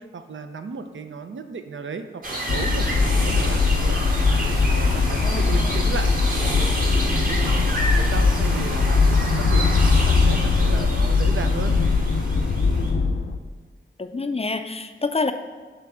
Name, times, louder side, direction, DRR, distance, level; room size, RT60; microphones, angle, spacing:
voice 1, 0.0-4.0 4.4-6.1 6.5-9.7 10.1-11.8, right 5 dB, 65° right, 8 dB, 0.5 m, -35 dB
sound 1, 2.2-12.9, right 1 dB, 40° right, 1.4 m, -30 dB
sound 2, 2.5-13.4, left 4 dB, 80° left, 0.6 m, -20 dB
voice 2, 5.2-5.8 13.1-13.3 14.0-15.3, left 3 dB, 30° left, 8 dB, 0.4 m, -28 dB
7.1 x 3.3 x 6.0 m, 1.5 s
wide cardioid pair, 80°, 21 cm